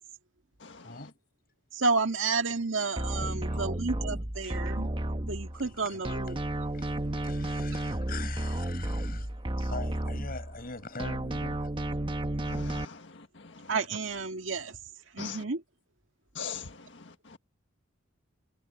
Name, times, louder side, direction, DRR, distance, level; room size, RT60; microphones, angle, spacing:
voice 1, 1.7-4.9 5.3-6.4 13.7-14.8 15.1-15.6, right 4 dB, 75° right, 2.0 m, -31 dB
sound 1, 3.0-5.7 6.0-10.7 11.0-12.8, right 1 dB, 25° right, 1.2 m, -32 dB
voice 2, 3.2-3.7 4.4-4.6 5.6-6.4 6.7-9.3 9.6-11.7, left 4 dB, 50° left, 5.9 m, -43 dB
voice 3, 12.4-13.0 15.2-15.4 16.4-16.7, left 6 dB, 65° left, 1.7 m, -39 dB
head